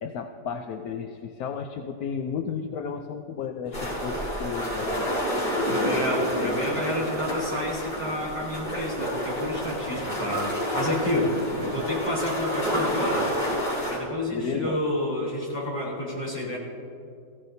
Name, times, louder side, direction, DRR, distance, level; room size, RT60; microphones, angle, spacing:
voice 1, 0.0-5.1 5.5-5.8 11.2-11.3 14.3-14.8, left 6 dB, 75° left, 5 dB, 1.1 m, -33 dB
sound 1, 3.7-14.0, equal, 55° left, 4.3 m, -29 dB
voice 2, 5.8-13.3 13.9-16.6, left 1 dB, 20° left, -5 dB, 4.4 m, -29 dB
21.0 x 15.5 x 2.7 m, 2.4 s
omnidirectional pair, 1.7 m